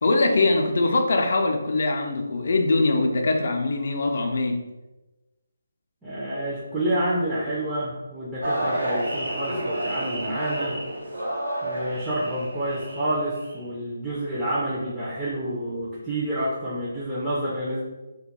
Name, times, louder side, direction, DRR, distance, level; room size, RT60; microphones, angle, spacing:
voice 1, 0.0-4.6, left 2 dB, 60° left, 3 dB, 0.4 m, -22 dB
voice 2, 6.0-10.8 11.6-17.8, right 1 dB, 5° right, -12 dB, 0.4 m, -28 dB
sound 1, 8.4-13.6, right 1 dB, 80° right, 0.8 m, -30 dB
2.2 x 2.2 x 2.9 m, 1.1 s
figure-of-eight pair, 155°, 0 cm